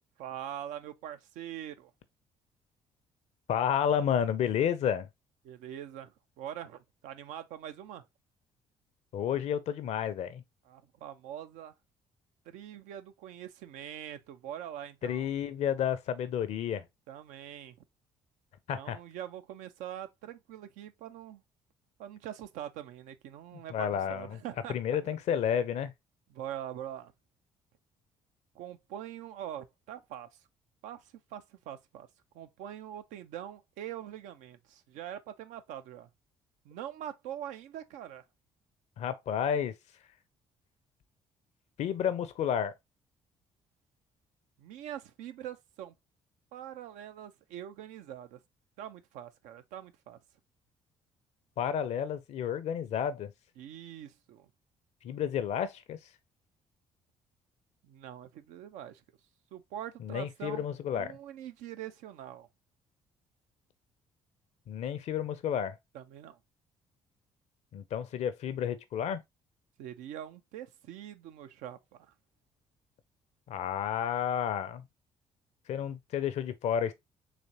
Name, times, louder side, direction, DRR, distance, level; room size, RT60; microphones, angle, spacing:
voice 1, 0.2-1.9 5.4-8.1 10.6-11.7 12.5-15.3 17.1-17.8 18.7-21.4 22.0-25.1 26.3-27.1 28.5-30.3 30.8-32.1 32.3-36.1 36.6-38.2 44.6-45.9 46.5-48.4 48.8-50.2 53.6-54.5 57.8-59.0 59.5-60.7 60.9-62.5 65.9-66.4 69.8-72.1, right 11 dB, 75° right, 0.6 m, -43 dB
voice 2, 3.5-5.1 9.1-10.4 15.0-16.8 18.7-19.0 23.7-24.4 24.7-25.9 39.0-39.7 41.8-42.7 51.6-53.3 55.0-56.0 60.0-61.2 64.7-65.8 67.7-69.2 73.5-74.8 75.7-76.9, left 9 dB, 60° left, 0.6 m, -31 dB
4.1 x 3.2 x 2.8 m
hypercardioid pair, 50°, 13 cm